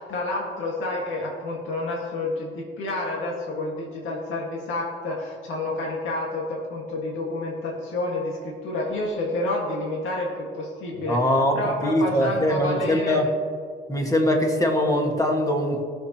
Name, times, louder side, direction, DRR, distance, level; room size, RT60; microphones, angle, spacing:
voice 1, 0.0-13.2, left 2 dB, 80° left, -2 dB, 1.8 m, -29 dB
voice 2, 11.1-11.5 11.8-13.3 13.9-15.8, left 1 dB, 15° left, 2 dB, 1.8 m, -22 dB
18.5 x 6.7 x 3.0 m, 2.1 s
cardioid pair, 90°, 20 cm